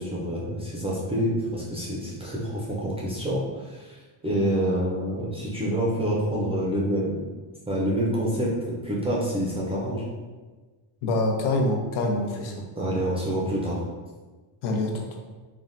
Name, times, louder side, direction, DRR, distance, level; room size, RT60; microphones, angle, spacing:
voice 1, 0.0-4.0 4.2-7.3 7.7-10.0 12.7-13.8, equal, 15° right, -6 dB, 0.3 m, -27 dB
voice 2, 11.0-12.6 14.6-15.1, left 2 dB, 85° left, 2 dB, 0.7 m, -25 dB
3.4 x 2.2 x 2.5 m, 1.3 s
cardioid pair, 135°, 48 cm